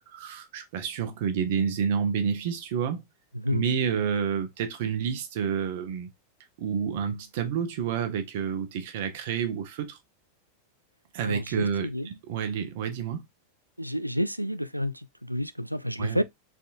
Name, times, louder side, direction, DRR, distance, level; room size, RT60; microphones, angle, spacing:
voice 1, 0.1-3.0 3.5-6.1 6.6-10.0 11.1-11.9 12.3-13.3 16.0-16.2, right 7 dB, 50° right, 1.0 m, -29 dB
voice 2, 3.3-3.7 3.9-4.0 11.2-12.1 13.8-16.2, equal, 90° right, 0.3 m, -30 dB
4.1 x 3.6 x 2.5 m
figure-of-eight pair, 90°, 0 cm